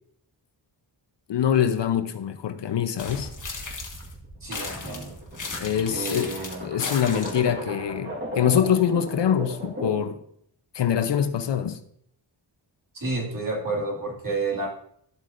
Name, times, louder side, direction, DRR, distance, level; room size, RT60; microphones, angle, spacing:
voice 1, 1.3-3.3 5.6-10.2 10.7-11.8, left 9 dB, 65° left, 0.7 m, -24 dB
sound 1, 3.0-4.1 4.5-7.5, left 4 dB, 40° left, 1.3 m, -36 dB
sound 2, 3.1-10.2, right 1 dB, 25° right, 1.5 m, -37 dB
voice 2, 4.4-5.1 5.9-6.7 12.9-14.7, right 3 dB, 45° right, 2.1 m, -30 dB
12.5 x 7.6 x 2.5 m
wide cardioid pair, 145°, 46 cm